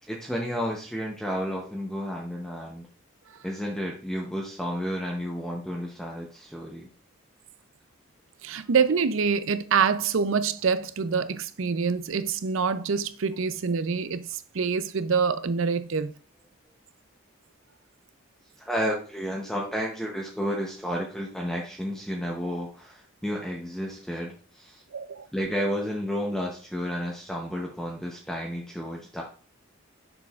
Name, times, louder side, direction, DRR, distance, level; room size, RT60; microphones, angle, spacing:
voice 1, 0.1-2.9 3.4-6.9 18.6-24.8 25.3-29.2, equal, ahead, 0.7 m, -31 dB
voice 2, 8.4-16.1 24.9-25.3, right 5 dB, 65° right, 0.5 m, -26 dB
6.9 x 6.2 x 2.4 m
head